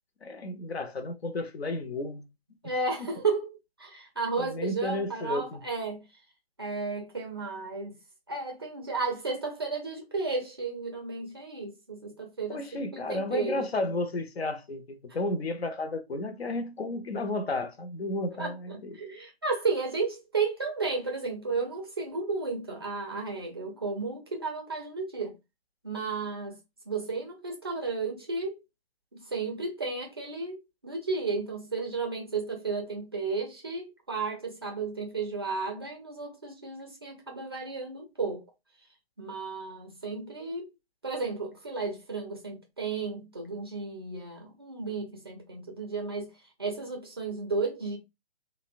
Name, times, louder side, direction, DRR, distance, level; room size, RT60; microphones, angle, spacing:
voice 1, 0.2-2.2 2.6-2.7 4.4-5.6 12.5-19.0, left 2 dB, 75° left, 0.6 m, -33 dB
voice 2, 2.6-3.5 3.8-6.0 6.6-8.0 8.3-13.6 18.4-25.4 25.8-26.6 26.9-28.6 29.1-38.4 39.2-40.7 41.0-46.3 46.6-48.0, right 4 dB, 25° right, 0.4 m, -33 dB
2.7 x 2.0 x 2.4 m
figure-of-eight pair, 135°, 32 cm